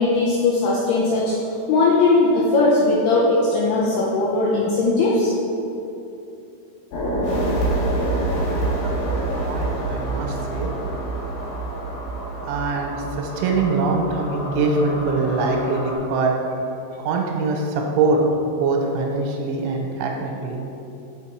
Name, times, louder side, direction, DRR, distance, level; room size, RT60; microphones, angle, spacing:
voice 1, 0.0-1.3 1.7-5.3, left 3 dB, 90° left, -5 dB, 2.3 m, -19 dB
sound 1, 6.9-16.0, right 1 dB, 70° left, 2.5 m, -26 dB
voice 2, 8.3-10.8 12.4-16.6 16.9-18.2 18.5-20.6, right 3 dB, 90° right, 1 dB, 3.1 m, -24 dB
6.0 x 6.0 x 4.6 m, 2.8 s
omnidirectional pair, 5.5 m